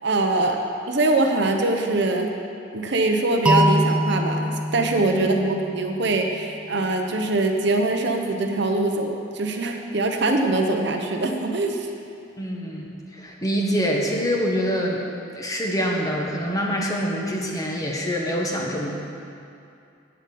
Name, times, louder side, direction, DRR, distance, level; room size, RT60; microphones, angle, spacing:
voice 1, 0.0-2.3 2.7-11.9, right 2 dB, 55° right, 3 dB, 0.9 m, -23 dB
sound 1, 3.5-6.4, equal, 5° right, 0.7 m, -23 dB
voice 2, 5.1-5.5 12.4-15.0 15.3-19.0, equal, 15° left, -1 dB, 1.2 m, -25 dB
9.0 x 7.5 x 8.5 m, 2.5 s
head